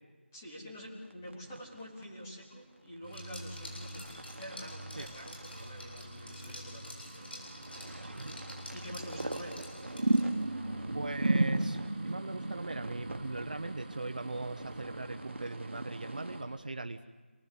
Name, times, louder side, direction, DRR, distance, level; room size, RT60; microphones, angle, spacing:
voice 1, 0.3-4.0 4.3-7.4 8.7-9.5 10.7-10.9, equal, 10° left, -5 dB, 3.5 m, -47 dB
sound 1, 1.1-2.3 3.3-6.3 6.6-6.7 7.2-16.4, right 2 dB, 80° right, 1.4 m, -36 dB
sound 2, 3.0-16.4, right 1 dB, 10° right, 4.4 m, -49 dB
Liquid, 3.1-10.5, left 1 dB, 55° left, 7.8 m, -49 dB
voice 2, 10.9-17.0, right 2 dB, 40° right, 7 dB, 1.0 m, -40 dB
28.0 x 19.0 x 8.3 m, 1.3 s
figure-of-eight pair, 180°, 7 cm